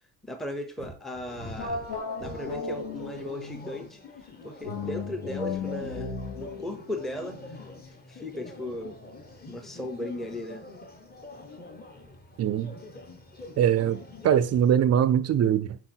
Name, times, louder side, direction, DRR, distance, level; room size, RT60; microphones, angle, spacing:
voice 1, 0.2-1.8 2.2-4.0 4.4-7.4 8.1-9.0 9.5-10.6, left 1 dB, ahead, 0.7 m, -36 dB
sound 1, 0.8-2.7 3.4-3.8, right 1 dB, 85° left, 3.8 m, -43 dB
sound 2, 1.3-14.8, left 2 dB, 25° left, 1.2 m, -46 dB
sound 3, 1.6-3.9 4.6-8.0, left 4 dB, 70° left, 3.1 m, -36 dB
voice 2, 12.4-12.7 13.6-15.8, right 9 dB, 40° right, 0.4 m, -22 dB
7.7 x 4.6 x 4.5 m
cardioid pair, 145°, 39 cm